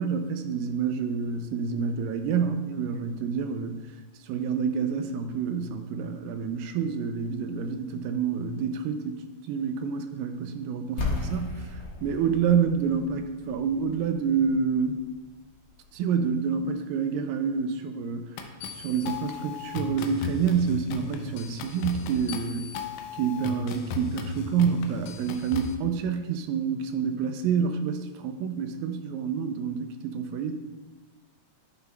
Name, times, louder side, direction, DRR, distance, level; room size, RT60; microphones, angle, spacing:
voice 1, 0.0-3.8 4.2-15.1 15.9-22.7 23.1-30.6, right 6 dB, 80° right, 7 dB, 2.2 m, -28 dB
sound 1, 11.0-16.7, left 3 dB, 55° left, 2.4 m, -36 dB
sound 2, 18.4-25.7, left 4 dB, 85° left, 1.9 m, -36 dB
11.0 x 6.1 x 2.2 m, 1.2 s
omnidirectional pair, 4.1 m